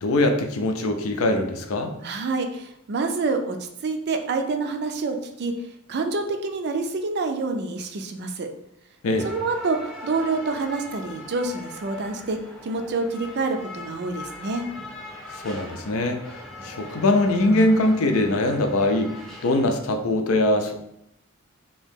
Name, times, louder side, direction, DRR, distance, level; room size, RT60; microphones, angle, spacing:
voice 1, 0.0-1.9 9.0-9.3 15.3-20.7, left 2 dB, 80° left, 5 dB, 0.5 m, -22 dB
voice 2, 2.0-3.6 3.8-5.5 5.9-8.5 9.2-14.7, right 3 dB, 55° right, 6 dB, 0.4 m, -27 dB
sound 1, 9.2-19.7, left 2 dB, ahead, 0.6 m, -41 dB
2.9 x 2.7 x 3.6 m, 0.79 s
head